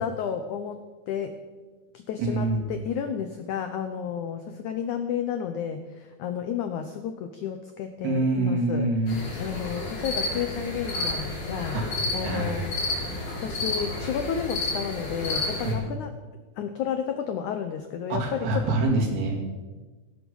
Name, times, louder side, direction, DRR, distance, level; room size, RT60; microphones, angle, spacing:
voice 1, 0.0-1.4 1.9-11.8 12.1-12.9 13.4-16.1 16.6-18.7, left 8 dB, 85° left, 8 dB, 1.7 m, -32 dB
voice 2, 2.2-2.7 8.0-9.1 11.7-11.9 12.2-12.6 15.6-15.8 18.1-19.5, right 2 dB, 75° right, 1 dB, 4.6 m, -25 dB
sound 1, 9.1-15.7, left 2 dB, 45° left, 5.3 m, -31 dB
17.0 x 13.5 x 5.5 m, 1.3 s
omnidirectional pair, 4.7 m